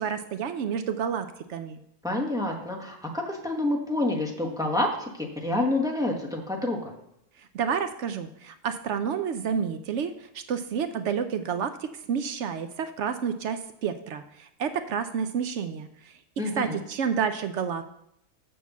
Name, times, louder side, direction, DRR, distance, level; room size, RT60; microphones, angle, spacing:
voice 1, 0.0-1.8 7.5-16.1 16.6-17.8, right 7 dB, 65° right, 9 dB, 0.7 m, -30 dB
voice 2, 2.0-6.9 16.4-16.8, left 2 dB, 5° right, -1 dB, 1.1 m, -28 dB
6.3 x 5.5 x 7.1 m, 0.77 s
omnidirectional pair, 1.6 m